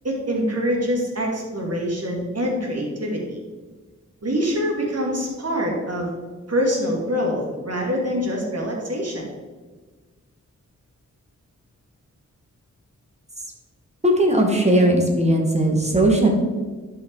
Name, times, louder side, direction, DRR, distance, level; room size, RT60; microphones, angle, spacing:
voice 1, 0.0-3.4 4.2-6.1 6.5-9.3, equal, 55° right, -1 dB, 2.6 m, -25 dB
voice 2, 14.0-16.3, right 1 dB, 20° right, 1 dB, 2.0 m, -18 dB
11.5 x 5.7 x 4.7 m, 1.4 s
wide cardioid pair, 85°, 31 cm